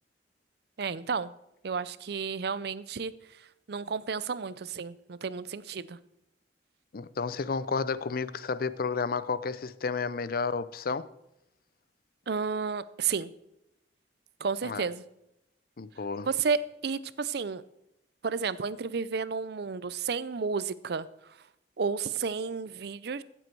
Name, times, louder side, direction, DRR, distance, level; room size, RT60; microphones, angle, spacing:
voice 1, 0.8-1.3 1.6-3.1 3.7-6.0 12.3-13.3 14.4-15.0 16.3-17.6 18.2-21.1 21.8-23.2, right 5 dB, 65° right, 0.5 m, -32 dB
voice 2, 6.9-11.1 14.6-14.9 15.8-16.3, left 4 dB, 55° left, 0.5 m, -31 dB
15.5 x 7.8 x 4.6 m
head